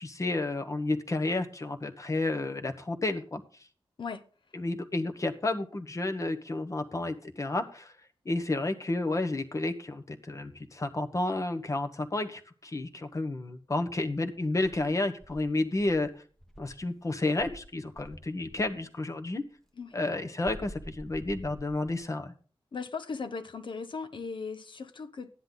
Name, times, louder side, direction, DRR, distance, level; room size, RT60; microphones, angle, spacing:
voice 1, 0.0-3.4 4.5-7.9 8.2-16.1 16.6-19.4 19.9-22.3, left 2 dB, 35° left, 1.3 m, -31 dB
Insect, 14.6-16.9 17.4-18.8 20.4-22.1, equal, 5° left, 1.0 m, -48 dB
voice 2, 22.7-25.3, left 4 dB, 60° left, 1.0 m, -38 dB
14.0 x 10.0 x 4.0 m
wide cardioid pair, 130°, 9 cm